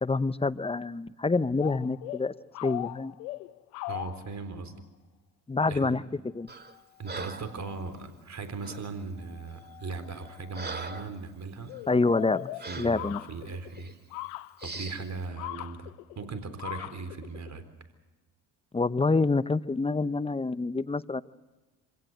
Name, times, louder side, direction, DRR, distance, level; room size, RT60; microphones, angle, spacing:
voice 1, 0.0-2.3 2.6-3.1 5.5-6.0 6.3-6.5 11.9-12.5 12.8-13.2 18.7-21.2, left 3 dB, 15° left, 16 dB, 0.7 m, -27 dB
sound 1, 1.6-4.4 6.7-6.8 7.1-7.2 7.3-7.9 9.2-11.1 11.7-17.6, left 19 dB, 85° left, 0.8 m, -40 dB
voice 2, 3.9-4.7 5.7-6.0 7.0-11.7 12.7-13.9 14.6-17.6, right 4 dB, 35° right, 10 dB, 3.9 m, -38 dB
Breathing, 6.5-6.7 7.1-7.6 8.6-8.9 9.6-9.7 10.1-11.2 11.6-11.8 12.6-13.0 13.7-13.9 14.6-15.1, right 3 dB, 20° right, 2.2 m, -41 dB
26.0 x 17.5 x 7.9 m, 1.2 s
hypercardioid pair, 65°, 45 cm